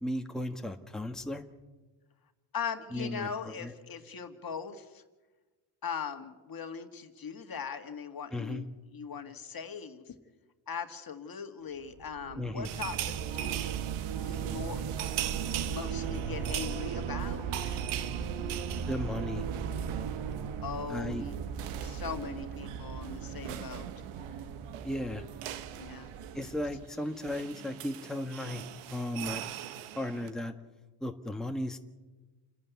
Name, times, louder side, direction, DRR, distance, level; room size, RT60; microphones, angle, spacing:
voice 1, 0.0-1.4 2.9-3.7 8.3-8.6 12.4-12.7 18.9-19.4 20.9-21.2 24.8-25.2 26.3-28.6 28.9-29.4 29.9-30.5 31.0-31.8, left 1 dB, ahead, 4 dB, 1.5 m, -35 dB
voice 2, 2.5-5.0 5.8-10.1 10.7-13.7 14.2-14.8 15.1-15.4 15.7-17.8 20.6-21.3 21.8-23.9 25.7-26.1, left 6 dB, 45° left, 7 dB, 2.0 m, -40 dB
sound 1, 11.9-26.8, right 7 dB, 65° right, 1.4 m, -37 dB
sound 2, 12.6-20.5 20.8-21.0 21.2-30.3, right 12 dB, 85° right, 1.2 m, -42 dB
28.5 x 11.0 x 9.4 m, 1.2 s
supercardioid pair, 65°, 50 cm